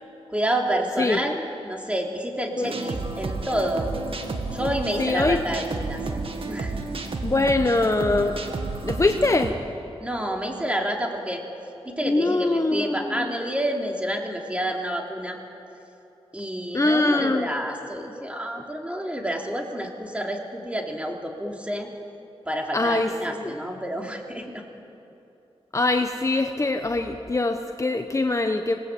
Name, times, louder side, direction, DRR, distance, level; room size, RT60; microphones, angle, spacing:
voice 1, 0.3-3.9 4.5-6.0 6.5-6.7 10.0-11.4 11.9-15.4 16.3-21.9 22.5-24.6, equal, 10° right, 1 dB, 3.4 m, -29 dB
sound 1, 2.6-9.5, right 3 dB, 60° right, 2.1 m, -31 dB
voice 2, 5.0-5.4 7.2-8.4 8.8-9.5 12.0-13.3 16.7-17.5 22.7-23.5 25.7-28.8, left 2 dB, 30° left, 5 dB, 1.1 m, -23 dB
26.0 x 19.5 x 8.6 m, 2.8 s
wide cardioid pair, 80°, 11 cm